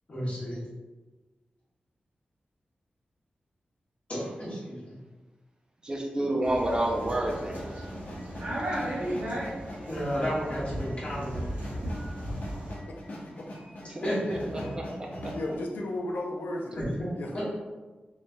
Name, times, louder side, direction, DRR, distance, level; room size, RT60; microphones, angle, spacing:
voice 1, 0.1-0.6 4.1-4.9 9.9-11.8 14.0-14.4 16.8-17.1 17.3-17.4, equal, 40° left, -9 dB, 1.5 m, -32 dB
voice 2, 5.8-7.7 13.9-14.0 14.5-15.3, right 1 dB, 25° right, 0 dB, 0.5 m, -29 dB
sound 1, 6.4-12.8, equal, 60° right, 0.8 m, -35 dB
sound 2, 6.7-15.5, equal, 60° left, 0.8 m, -42 dB
voice 3, 12.9-13.5 15.3-16.8 17.1-17.3, left 1 dB, 80° left, 0 dB, 0.5 m, -34 dB
3.9 x 3.2 x 2.2 m, 1.3 s
wide cardioid pair, 165°, 3 cm